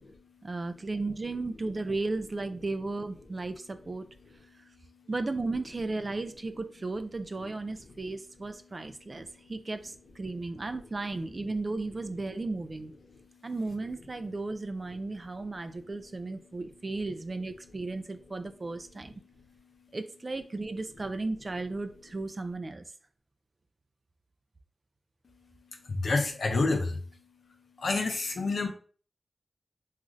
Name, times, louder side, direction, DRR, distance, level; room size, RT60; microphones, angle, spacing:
voice 1, 0.4-4.1 5.1-12.9 13.4-19.1 19.9-22.8, right 3 dB, 40° right, 8 dB, 0.3 m, -35 dB
voice 2, 25.9-27.0 27.8-28.7, left 3 dB, 85° left, 3 dB, 0.5 m, -28 dB
3.0 x 2.4 x 2.5 m, 0.41 s
wide cardioid pair, 80°, 0 cm